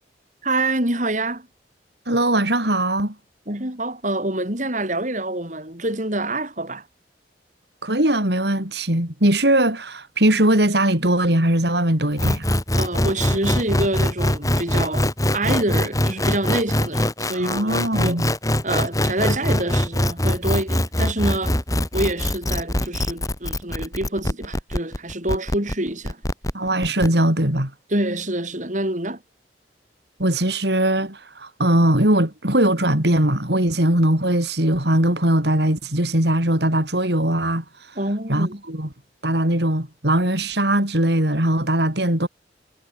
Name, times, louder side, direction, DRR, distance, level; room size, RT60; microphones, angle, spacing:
voice 1, 0.4-1.5 3.5-6.8 12.7-17.8 18.0-18.2 18.6-21.6 21.9-26.2 27.9-29.2 38.0-38.6, right 1 dB, 45° right, 7.5 m, -26 dB
voice 2, 2.1-3.1 7.8-12.5 17.3-18.3 26.5-27.7 30.2-38.0 38.3-38.9 39.2-42.3, right 1 dB, 65° right, 5.6 m, -20 dB
sound 1, 12.2-27.1, left 1 dB, 20° left, 5.2 m, -22 dB
head